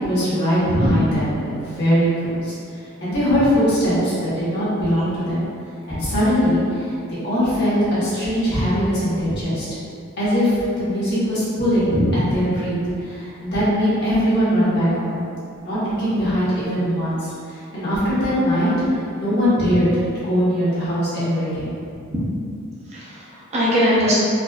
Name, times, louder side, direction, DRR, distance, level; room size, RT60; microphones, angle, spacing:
voice 1, 0.0-2.5 3.0-5.5 5.9-7.0 7.2-9.7 10.2-11.9 12.3-12.8 13.0-15.3 15.6-19.9 20.2-21.7, equal, 55° left, -11 dB, 1.3 m, -21 dB
voice 2, 0.6-1.0 5.9-6.0 11.9-12.1 22.1-22.2 22.9-24.2, equal, 30° right, -8 dB, 0.6 m, -20 dB
4.1 x 2.5 x 2.3 m, 2.5 s
head